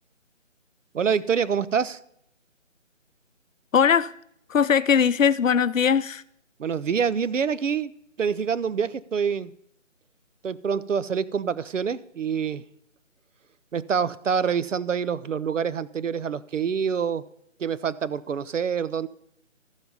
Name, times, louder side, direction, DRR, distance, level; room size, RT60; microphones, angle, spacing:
voice 1, 0.9-2.0 6.6-7.9 8.2-9.5 10.4-12.6 13.7-17.2 17.6-19.1, right 6 dB, 70° right, 0.7 m, -26 dB
voice 2, 3.7-4.1 4.5-6.2, left 7 dB, 85° left, 0.6 m, -20 dB
13.5 x 7.3 x 5.3 m
figure-of-eight pair, 170°, 39 cm